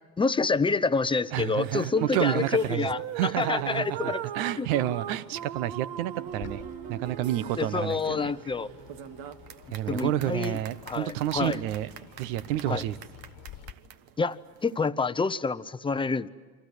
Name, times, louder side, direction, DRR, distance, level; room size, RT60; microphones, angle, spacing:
voice 1, 0.2-4.2 4.6-4.7 7.6-8.7 9.9-10.6 10.9-11.6 12.7-12.8 14.2-16.3, left 4 dB, 10° left, 14 dB, 0.7 m, -27 dB
voice 2, 1.3-2.9 3.1-6.6 6.9-8.3 9.7-11.9 12.2-13.0, right 13 dB, 75° right, 16 dB, 1.1 m, -29 dB
sound 1, 1.4-14.9, right 11 dB, 55° right, 1.3 m, -40 dB
Bird, 6.3-13.7, left 11 dB, 50° left, 1.5 m, -50 dB
29.5 x 24.0 x 8.2 m, 1.4 s
hypercardioid pair, 90°, 42 cm